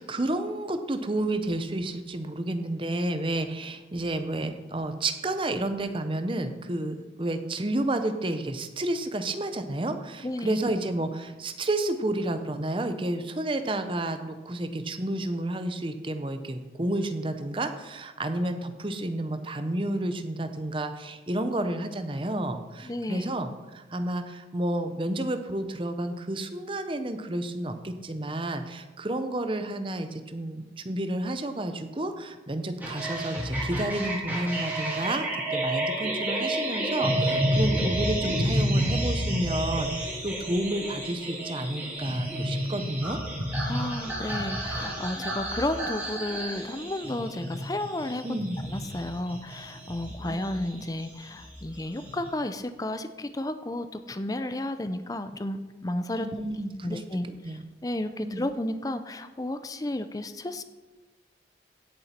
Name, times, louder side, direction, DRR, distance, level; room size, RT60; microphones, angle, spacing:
voice 1, 0.0-43.2 48.2-48.6 50.2-50.4 56.1-57.7 58.2-58.4, right 1 dB, 30° right, 8 dB, 0.8 m, -31 dB
voice 2, 10.2-10.6 22.8-23.3 43.7-48.3 48.6-56.3 56.8-60.6, left 1 dB, 20° left, 10 dB, 0.6 m, -32 dB
sound 1, 32.8-52.3, right 1 dB, 10° right, 3.0 m, -30 dB
16.5 x 7.0 x 4.4 m, 1.2 s
head